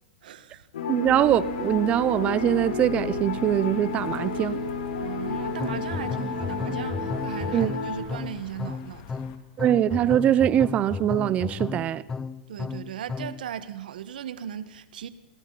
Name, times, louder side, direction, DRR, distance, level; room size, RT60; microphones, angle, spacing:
voice 1, 0.2-0.7 5.0-9.3 12.5-15.1, right 9 dB, 80° right, 1.8 m, -37 dB
sound 1, 0.7-8.0, left 4 dB, 85° left, 6.2 m, -31 dB
voice 2, 0.9-4.6 7.5-7.7 9.6-12.0, right 11 dB, 30° right, 0.9 m, -23 dB
sound 2, 1.0-9.4, left 7 dB, 45° left, 3.2 m, -45 dB
sound 3, 5.6-13.5, left 5 dB, 15° left, 0.9 m, -34 dB
29.5 x 23.0 x 4.3 m
hypercardioid pair, 135°, 5 cm